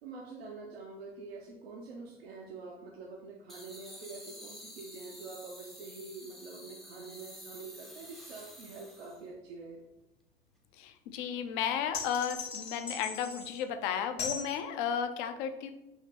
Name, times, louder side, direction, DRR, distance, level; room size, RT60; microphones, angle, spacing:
voice 1, 0.0-9.8, right 3 dB, 70° right, 0 dB, 0.7 m, -46 dB
sound 1, 3.5-9.3, equal, ahead, 0.6 m, -50 dB
voice 2, 10.8-15.7, left 8 dB, 50° left, 9 dB, 0.6 m, -34 dB
sound 2, 11.9-13.6 14.2-14.5, left 5 dB, 80° left, 1.1 m, -38 dB
5.5 x 2.9 x 3.3 m, 0.95 s
figure-of-eight pair, 75°, 31 cm